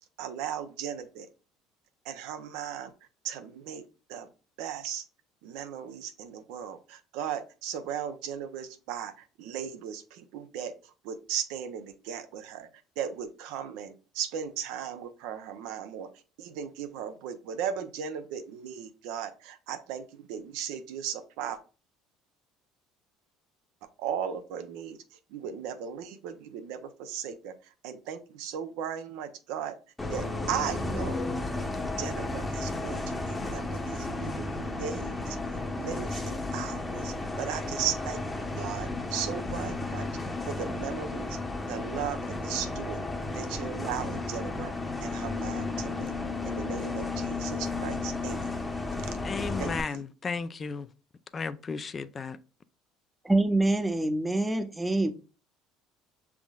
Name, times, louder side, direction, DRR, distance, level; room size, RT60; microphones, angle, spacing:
voice 1, 0.2-1.3 2.0-2.9 3.2-4.3 4.6-5.0 5.4-12.7 13.0-16.1 16.4-21.6 24.0-25.0 25.3-29.8 30.1-31.2 32.0-35.4 35.8-40.1 40.4-41.4 41.7-43.1 43.3-44.7 45.0-46.1 46.4-48.5 49.0-49.2 49.6-50.0, right 8 dB, 80° right, 0.7 m, -37 dB
Bus, 30.0-49.8, left 2 dB, 15° left, 0.8 m, -33 dB
voice 2, 49.2-50.9 51.3-52.4, left 5 dB, 35° left, 0.4 m, -34 dB
voice 3, 53.2-55.1, right 2 dB, 10° right, 0.7 m, -25 dB
6.1 x 3.6 x 2.3 m
supercardioid pair, 85°, 0 cm